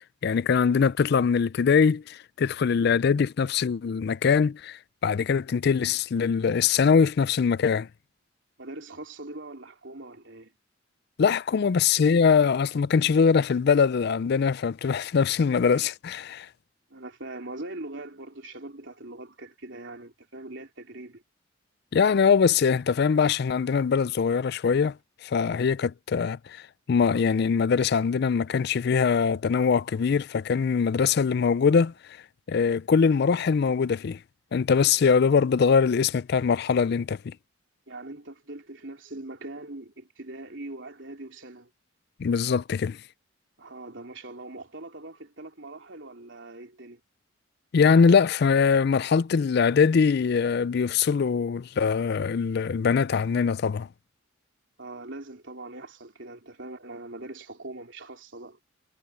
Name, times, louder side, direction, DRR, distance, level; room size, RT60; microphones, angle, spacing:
voice 1, 0.2-7.9 11.2-16.5 21.9-25.0 25.2-26.6 26.9-31.9 32.5-34.2 34.5-37.3 42.2-43.0 47.7-53.9, left 6 dB, 50° left, 0.4 m, -22 dB
voice 2, 8.6-10.5 16.9-21.2 37.9-41.7 43.6-47.0 54.8-58.6, right 2 dB, 60° right, 3.8 m, -41 dB
head